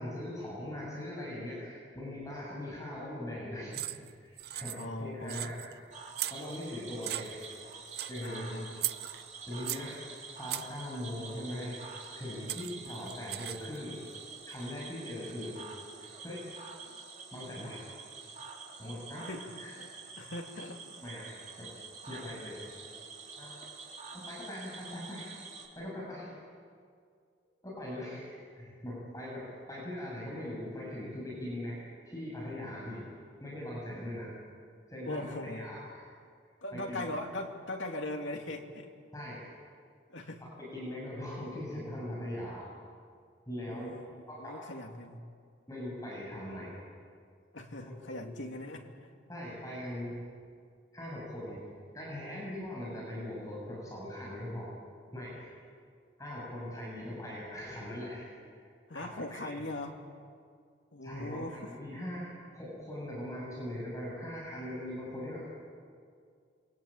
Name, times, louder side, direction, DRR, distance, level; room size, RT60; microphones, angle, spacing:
voice 1, 0.0-3.8 4.2-5.7 6.3-7.5 8.1-8.5 9.5-11.9 12.1-15.7 16.2-16.5 17.3-17.8 18.8-19.7 21.0-21.7 22.1-22.6 23.4-23.6 24.1-25.3 25.7-26.3 27.6-33.1 33.4-34.4 34.9-36.0 36.7-37.0 39.1-39.5 40.6-42.7 43.5-44.0 44.3-44.6 45.7-46.8 48.1-48.4 49.3-50.2 50.9-51.6 51.9-54.7 55.1-55.5 56.2-58.3 58.6-58.7 58.9-59.5 61.0-65.5, left 1 dB, 15° left, -5 dB, 7.2 m, -41 dB
sound 1, 3.7-4.1 4.4-5.0 5.3-5.7 6.2-6.7 7.0-7.6 7.9-8.3 8.8-9.9 10.5-10.8 12.0-12.1 12.5-13.8, right 14 dB, 55° right, 0.7 m, -37 dB
voice 2, 4.7-5.5 8.2-9.2 19.2-19.9 20.2-20.8 35.0-35.7 36.6-38.9 40.1-40.4 43.7-44.1 44.4-45.2 47.5-48.9 58.9-60.0 60.9-61.7, left 1 dB, 85° left, 2 dB, 2.9 m, -40 dB
Cricket / Frog, 5.9-25.7, right 4 dB, 40° right, 4.1 m, -47 dB
27.5 x 24.0 x 8.9 m, 2.2 s
head